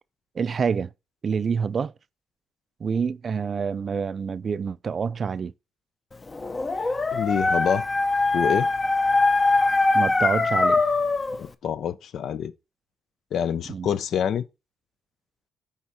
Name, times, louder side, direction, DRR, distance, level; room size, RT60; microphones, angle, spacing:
voice 1, 0.4-0.9 1.2-1.9 2.8-5.5 9.9-10.8 13.7-13.9, right 6 dB, 45° right, 0.4 m, -27 dB
Dog, 6.3-11.4, left 3 dB, 25° left, 0.6 m, -22 dB
voice 2, 7.1-7.9 8.3-8.7 11.4-12.5 13.3-14.4, left 8 dB, 70° left, 0.5 m, -26 dB
9.6 x 3.5 x 4.2 m
cardioid pair, 90°, 0 cm